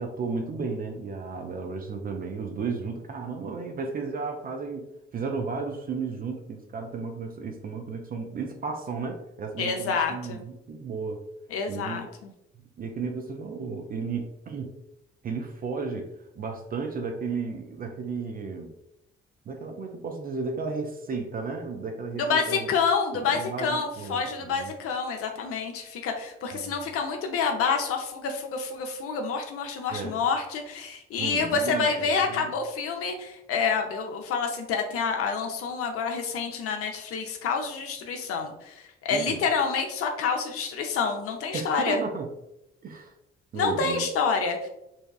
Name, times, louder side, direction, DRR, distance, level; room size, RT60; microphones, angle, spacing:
voice 1, 0.0-11.2 11.7-12.0 12.8-14.7 15.2-18.7 19.5-22.7 23.1-24.7 26.6-26.9 29.9-30.2 31.1-32.5 39.1-39.4 41.5-42.3 42.8-43.1 43.5-44.1, right 4 dB, 30° right, 3 dB, 0.4 m, -34 dB
voice 2, 9.6-10.4 11.5-12.3 22.2-42.0 43.5-44.7, left 5 dB, 45° left, 3 dB, 0.5 m, -28 dB
2.6 x 2.3 x 2.2 m, 0.86 s
figure-of-eight pair, 40°, 32 cm